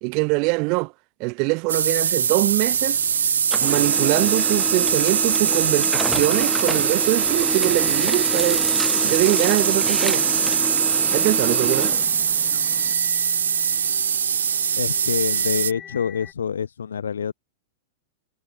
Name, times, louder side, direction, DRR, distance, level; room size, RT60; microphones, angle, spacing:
voice 1, 0.0-0.9 1.2-3.0 3.6-8.7 9.0-10.2 11.1-12.0, right 33 dB, 45° right, 3.2 m, -23 dB
sound 1, 1.7-15.7, right 7 dB, 80° right, 0.3 m, -22 dB
Printer, 1.8-3.1 3.4-12.9, equal, ahead, 0.8 m, -30 dB
sound 2, 5.3-16.3, left 9 dB, 25° left, 4.3 m, -45 dB
voice 2, 14.8-17.3, left 7 dB, 80° left, 0.9 m, -26 dB
hypercardioid pair, 110°, 0 cm